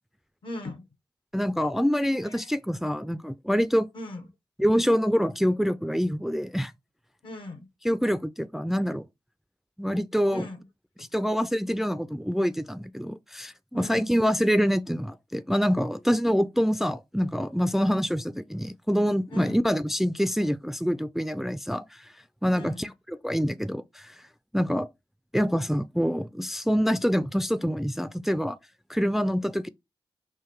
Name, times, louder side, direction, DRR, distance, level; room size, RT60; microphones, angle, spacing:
voice 1, 0.4-0.9 2.3-2.5 3.9-4.3 7.2-7.7 10.3-10.7 11.0-11.1 13.7-14.2 19.3-19.6 22.5-22.9, left 1 dB, 65° left, 0.9 m, -39 dB
voice 2, 1.3-3.9 4.6-6.7 7.8-9.1 9.8-10.5 11.1-22.1 22.4-24.1 24.5-24.9 25.3-28.6 28.9-29.7, equal, 5° right, 0.3 m, -26 dB
3.8 x 2.5 x 4.4 m
cardioid pair, 50°, 9 cm